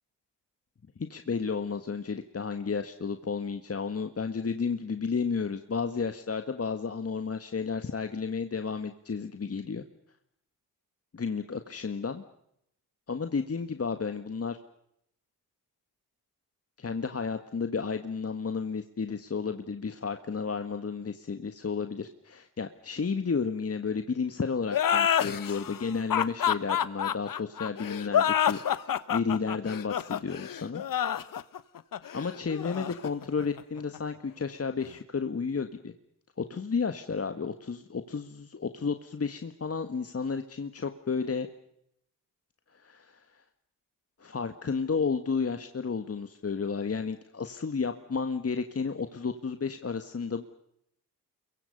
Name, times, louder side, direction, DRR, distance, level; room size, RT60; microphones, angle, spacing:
voice 1, 1.0-9.8 11.1-12.2 13.1-14.6 16.8-28.6 28.9-30.8 32.1-35.9 36.4-41.5 42.7-43.4 44.2-50.4, left 5 dB, 30° left, 8 dB, 1.7 m, -32 dB
sound 1, 24.7-34.0, left 9 dB, 45° left, 1.3 m, -28 dB
29.5 x 23.0 x 5.4 m, 0.76 s
hypercardioid pair, 40°, 44 cm